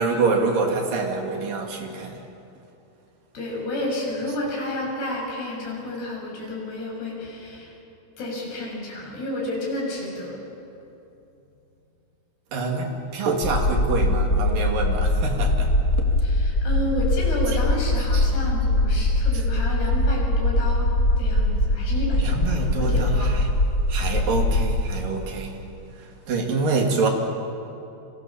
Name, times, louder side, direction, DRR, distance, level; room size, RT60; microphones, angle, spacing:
voice 1, 0.0-2.2 4.3-4.4 12.5-16.1 17.5-17.6 18.1-18.3 19.3-19.4 22.2-23.5 23.9-25.6 26.0-27.1, right 3 dB, 60° right, 2 dB, 4.2 m, -26 dB
voice 2, 3.3-7.7 8.2-10.4 16.2-20.9 21.2-23.3, left 1 dB, 75° left, -1 dB, 8.5 m, -31 dB
sound 1, 13.4-24.8, left 1 dB, 30° left, 3.3 m, -22 dB
30.0 x 25.5 x 7.2 m, 2.8 s
omnidirectional pair, 4.7 m